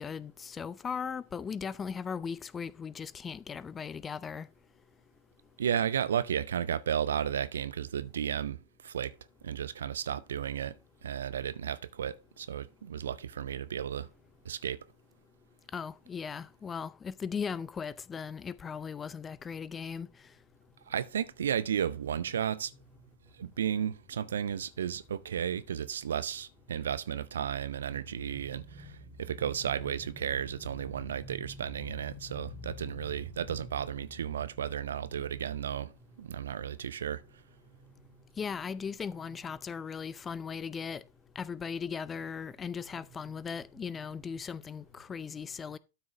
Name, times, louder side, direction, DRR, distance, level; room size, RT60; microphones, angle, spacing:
voice 1, 0.0-4.5 15.7-20.1 28.2-28.3 31.3-33.0 33.5-33.7 38.4-41.0 41.4-45.8, left 6 dB, 20° left, 0.5 m, -38 dB
voice 2, 5.6-9.1 9.4-10.7 11.0-14.1 14.5-14.8 20.9-22.7 23.4-35.9 36.2-37.2, right 9 dB, 65° right, 0.6 m, -33 dB
12.5 x 6.3 x 3.3 m
figure-of-eight pair, 90°, 0 cm